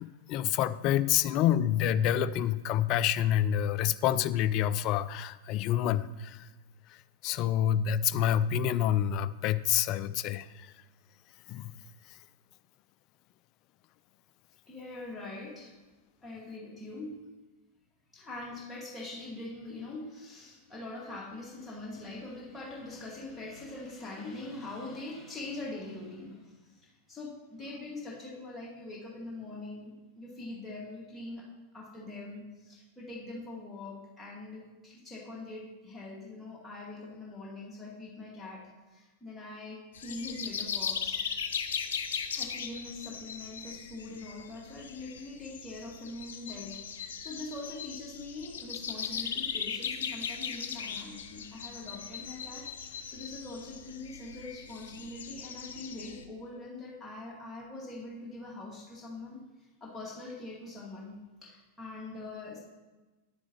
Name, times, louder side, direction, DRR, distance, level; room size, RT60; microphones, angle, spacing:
voice 1, 0.0-6.5 7.2-10.7 11.5-11.7, left 10 dB, 40° left, 15 dB, 0.3 m, -28 dB
voice 2, 14.7-15.8 16.2-17.2 18.1-31.5 31.7-41.2 42.3-61.2 61.4-62.6, left 2 dB, 5° left, -5 dB, 2.2 m, -43 dB
sound 1, 39.9-56.2, left 7 dB, 60° left, 0.7 m, -38 dB
9.7 x 9.5 x 3.1 m, 1.2 s
figure-of-eight pair, 90°, 0 cm